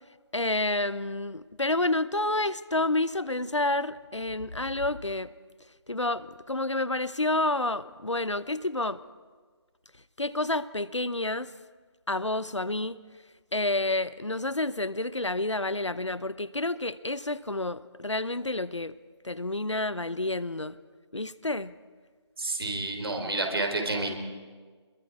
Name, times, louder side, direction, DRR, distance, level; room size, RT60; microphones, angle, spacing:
voice 1, 0.3-5.3 5.9-9.0 10.2-11.5 12.1-13.0 13.5-18.9 19.2-20.8 21.1-21.7, left 2 dB, 90° left, 16 dB, 0.9 m, -29 dB
voice 2, 22.4-24.1, right 2 dB, 55° right, 3 dB, 4.2 m, -29 dB
28.5 x 22.0 x 4.8 m, 1.5 s
figure-of-eight pair, 160°, 15 cm